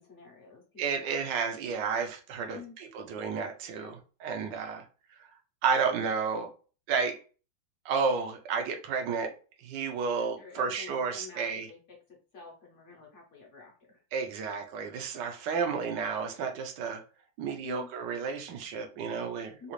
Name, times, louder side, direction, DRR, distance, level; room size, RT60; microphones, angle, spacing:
voice 1, 0.0-0.6 0.9-1.2 2.5-2.8 3.8-4.0 10.2-14.0 15.6-15.7 17.6-17.9 19.6-19.7, left 4 dB, 50° left, -1 dB, 0.9 m, -49 dB
voice 2, 0.8-4.9 5.6-6.5 6.9-7.2 7.8-9.3 9.6-11.7 14.1-17.0 17.4-19.7, right 5 dB, 75° right, 4 dB, 1.3 m, -31 dB
3.8 x 2.4 x 3.0 m, 0.37 s
omnidirectional pair, 2.1 m